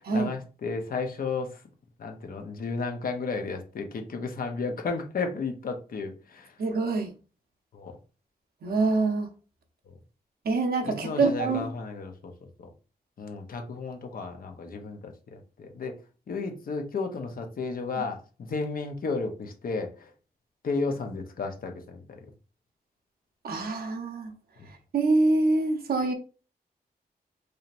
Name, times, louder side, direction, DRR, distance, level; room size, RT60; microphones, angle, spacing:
voice 1, 0.0-1.6 2.0-6.5 7.7-7.9 10.9-12.3 12.6-12.7 13.2-16.0 16.3-18.2 18.5-20.1 20.6-22.2 24.6-24.7, left 4 dB, 65° left, 0.8 m, -33 dB
voice 2, 6.6-7.1 8.6-9.3 10.4-11.7 23.4-24.3 24.9-26.1, right 3 dB, 80° right, 0.9 m, -25 dB
4.9 x 2.9 x 2.6 m
wide cardioid pair, 120°, 16 cm